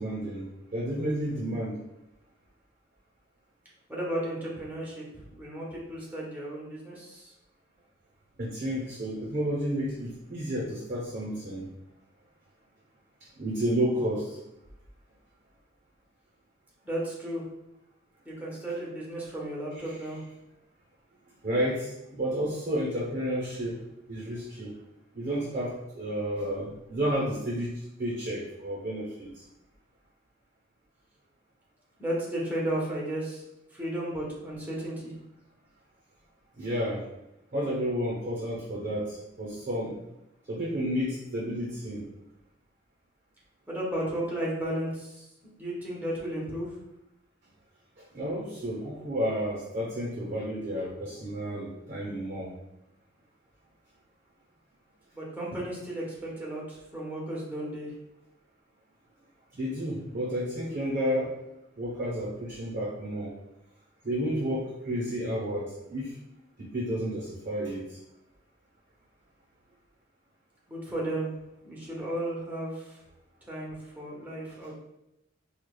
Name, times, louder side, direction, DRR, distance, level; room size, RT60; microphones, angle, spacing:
voice 1, 0.0-1.8 8.4-11.7 13.4-14.4 21.4-23.8 24.1-24.7 25.1-29.4 36.6-37.1 37.5-39.9 40.5-42.0 48.0-52.5 59.5-61.4 61.8-63.3 64.0-66.2 66.6-68.0, equal, 45° right, -4 dB, 0.8 m, -31 dB
voice 2, 3.9-7.3 16.8-17.4 18.2-20.2 32.0-33.4 33.7-35.2 43.7-45.3 45.5-46.8 48.8-49.0 55.1-57.9 70.7-71.3 71.6-73.0 73.4-74.7, right 1 dB, 10° right, -5 dB, 0.9 m, -34 dB
4.8 x 2.3 x 2.2 m, 0.88 s
head